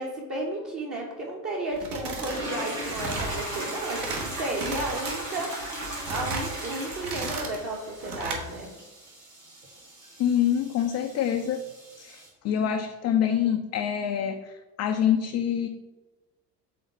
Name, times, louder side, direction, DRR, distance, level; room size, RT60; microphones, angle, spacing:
voice 1, 0.0-8.7, right 2 dB, 30° right, -3 dB, 1.2 m, -33 dB
sound 1, 1.7-2.4 2.7-3.4 3.8-4.3 4.6-5.1 5.6-6.5 6.9-7.6 8.0-8.4, right 3 dB, 55° right, 1.5 m, -34 dB
sound 2, 2.1-12.3, right 1 dB, 90° right, 1.5 m, -37 dB
voice 2, 10.2-11.6 12.0-15.7, left 9 dB, 35° left, 4 dB, 0.5 m, -26 dB
5.1 x 3.8 x 5.5 m, 1.1 s
figure-of-eight pair, 60°, 47 cm